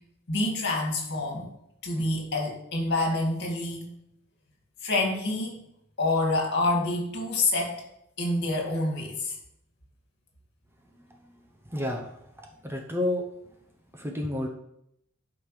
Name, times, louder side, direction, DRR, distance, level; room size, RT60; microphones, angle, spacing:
voice 1, 0.3-1.5 1.8-3.9 4.8-5.5 6.0-7.8 8.2-9.3, left 2 dB, 50° left, 0 dB, 2.1 m, -27 dB
voice 2, 11.7-13.5 13.9-14.5, left 1 dB, 10° right, 1 dB, 0.7 m, -31 dB
12.0 x 4.9 x 3.2 m, 0.78 s
head